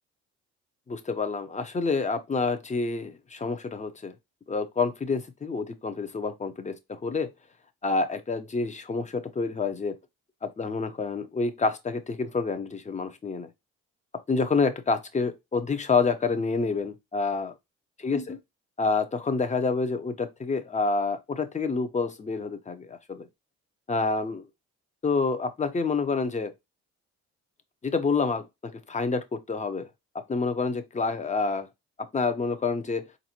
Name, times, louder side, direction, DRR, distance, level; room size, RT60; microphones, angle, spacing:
voice 1, 0.9-4.1 4.5-7.3 7.8-10.0 10.4-13.5 14.3-17.5 18.0-18.4 18.8-23.3 23.9-24.4 25.0-26.5 27.8-29.9 30.1-31.7 32.0-33.1, left 4 dB, 25° left, 0.7 m, -28 dB
4.1 x 2.6 x 2.8 m
cardioid pair, 90°, 30 cm